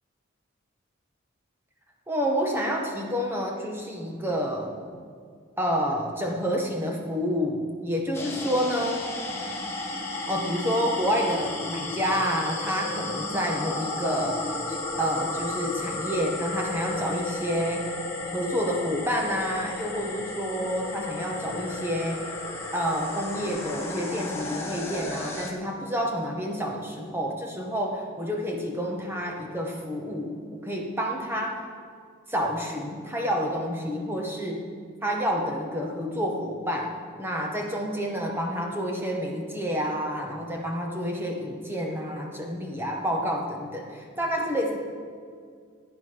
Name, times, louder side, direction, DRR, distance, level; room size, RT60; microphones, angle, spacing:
voice 1, 2.1-4.8 5.6-9.1 10.3-17.9 18.2-22.4 22.7-31.6 32.3-34.7 35.0-44.8, equal, 10° right, 1 dB, 1.5 m, -29 dB
sound 1, 8.1-25.5, left 2 dB, 10° left, 1.4 m, -33 dB
14.5 x 9.5 x 6.1 m, 2.1 s
head